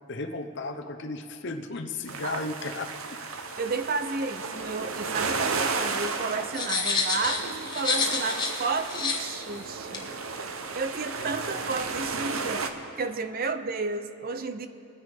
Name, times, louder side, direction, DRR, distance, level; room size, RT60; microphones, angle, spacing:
voice 1, 0.1-2.9 11.2-11.3, left 3 dB, 55° left, 6 dB, 0.8 m, -34 dB
sound 1, 2.1-12.7, right 4 dB, 70° right, 0.8 m, -33 dB
voice 2, 3.3-10.1 10.7-12.6 13.0-14.7, right 4 dB, 40° right, 9 dB, 0.5 m, -32 dB
sound 2, 6.5-8.6 8.9-9.2 9.9-10.0, left 4 dB, 20° left, 1.2 m, -28 dB
22.5 x 9.8 x 3.5 m, 2.8 s
head